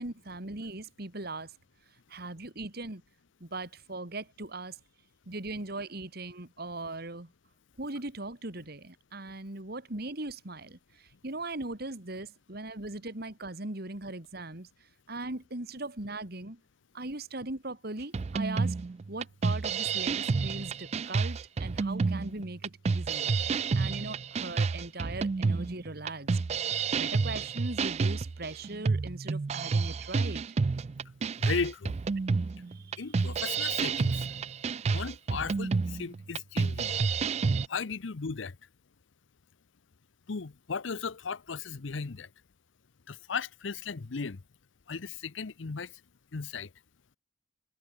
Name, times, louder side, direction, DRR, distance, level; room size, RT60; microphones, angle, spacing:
voice 1, 0.0-1.5 2.1-3.0 3.4-4.8 5.3-7.3 7.8-14.7 15.1-16.6 16.9-18.7 19.1-26.4 26.9-30.4 32.7-33.0, right 2 dB, 55° right, 2.5 m, -39 dB
sound 1, 18.1-37.7, right 4 dB, 35° right, 0.3 m, -29 dB
voice 2, 31.4-31.9 33.0-34.3 34.8-37.0 37.7-38.6 40.3-42.3 43.1-44.4 44.9-46.0 46.3-46.7, left 5 dB, 75° left, 0.7 m, -36 dB
head